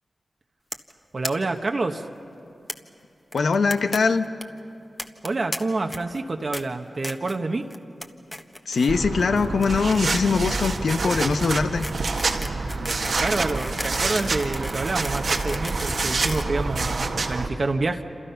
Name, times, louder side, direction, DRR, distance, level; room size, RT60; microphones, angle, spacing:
sound 1, 0.7-0.9 1.2-1.3 1.6-1.7 1.9-2.0 2.7-2.8 3.3-4.0 4.2-4.4 5.0-5.6 5.9-6.2 6.5-6.6 7.0-7.4 7.7-8.1 8.3-8.9 9.2-17.2, left 1 dB, 15° left, 1.4 m, -35 dB
voice 1, 1.1-2.1 5.2-7.7 13.2-18.0, right 3 dB, 55° right, 4 dB, 1.2 m, -27 dB
voice 2, 3.3-4.2 8.7-11.9, left 4 dB, 80° left, 8 dB, 1.0 m, -22 dB
sound 2, 8.9-17.5, right 3 dB, 80° right, 1.7 m, -27 dB
28.0 x 27.0 x 5.8 m, 2.9 s
cardioid pair, 50°, 0 cm